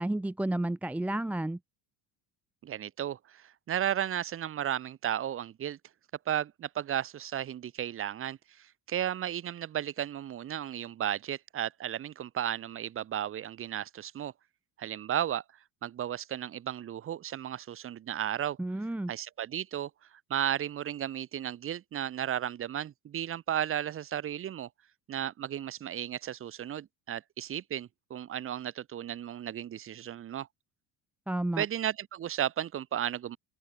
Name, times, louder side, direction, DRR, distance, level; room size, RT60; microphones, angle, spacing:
voice 1, 0.0-1.6 18.6-19.1 31.3-31.6, right 1 dB, 5° right, 0.8 m, -31 dB
voice 2, 2.6-5.8 6.3-14.3 14.8-15.4 15.8-18.6 19.1-19.9 20.3-24.7 25.1-30.5 31.6-33.4, right 10 dB, 35° right, 4.3 m, -34 dB
open air
cardioid pair, 155°, 36 cm